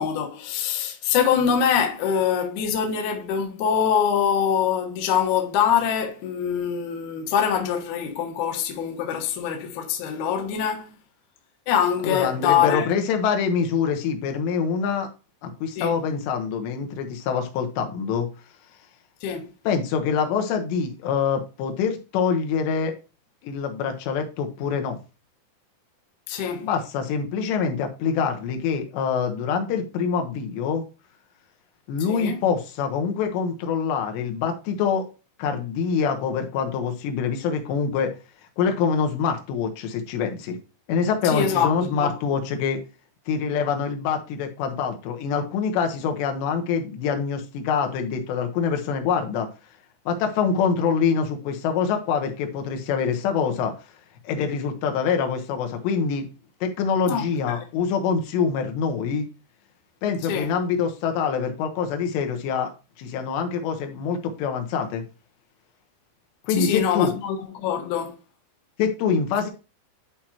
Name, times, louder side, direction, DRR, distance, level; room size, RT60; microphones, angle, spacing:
voice 1, 0.0-11.0 11.7-12.9 15.8-15.9 19.2-19.5 26.3-26.7 32.1-32.4 41.2-42.1 57.1-57.6 60.3-60.5 66.5-68.2, left 8 dB, 65° left, 2.0 m, -24 dB
voice 2, 12.0-15.1 15.4-18.3 19.6-22.9 23.4-25.0 26.6-30.8 31.9-35.1 35.4-38.2 38.6-40.6 40.9-42.8 43.3-49.5 50.1-53.7 54.2-56.3 56.6-59.3 60.0-62.7 63.0-65.0 66.4-67.1 68.8-69.5, left 6 dB, 85° left, 3.3 m, -25 dB
11.0 x 4.4 x 2.8 m
omnidirectional pair, 4.9 m